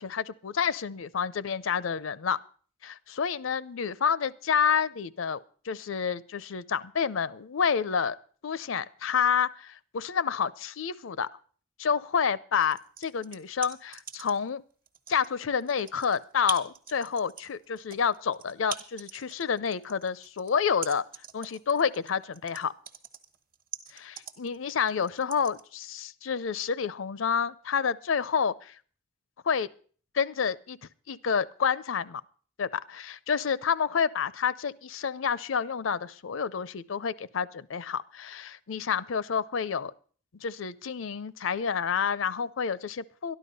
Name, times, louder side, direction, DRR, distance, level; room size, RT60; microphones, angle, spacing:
voice 1, 0.0-2.4 2.8-5.4 5.6-8.2 8.4-11.3 11.8-14.6 15.1-21.0 21.3-22.7 23.9-28.8 29.4-29.7 30.1-30.8 31.1-32.2 32.6-39.9 40.3-43.3, left 6 dB, 75° left, 18 dB, 0.5 m, -29 dB
sound 1, 12.6-14.5 14.9-25.6, right 7 dB, 45° right, 1.3 m, -41 dB
13.0 x 11.0 x 5.4 m, 0.43 s
head